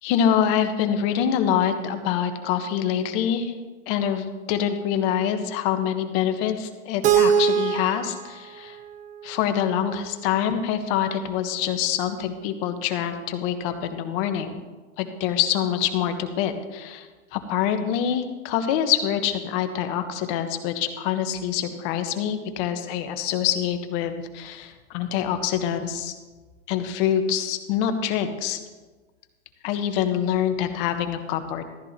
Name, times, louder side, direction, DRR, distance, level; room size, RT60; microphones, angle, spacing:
voice 1, 0.0-3.5 3.9-8.8 9.2-14.6 15.0-26.2 26.7-28.6 29.6-31.7, left 9 dB, 45° left, 7 dB, 1.3 m, -25 dB
Keyboard (musical), 7.0-10.0, right 8 dB, 20° right, 0.5 m, -24 dB
14.5 x 12.5 x 2.9 m, 1.3 s
hypercardioid pair, 130°, 37 cm